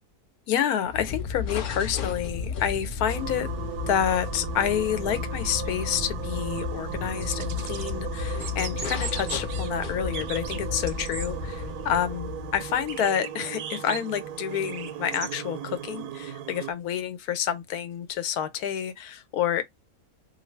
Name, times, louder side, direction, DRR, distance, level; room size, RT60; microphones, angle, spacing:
voice 1, 0.5-3.5 3.9-19.6, left 9 dB, 90° left, 1.1 m, -28 dB
sound 1, 0.8-13.0, left 5 dB, 70° left, 0.5 m, -33 dB
sound 2, 3.1-16.7, right 11 dB, 90° right, 1.1 m, -37 dB
sound 3, 7.2-7.9 8.3-9.7 10.1-11.3 11.7-11.8 12.9-15.3, right 8 dB, 70° right, 0.7 m, -39 dB
2.6 x 2.6 x 3.1 m
omnidirectional pair, 1.6 m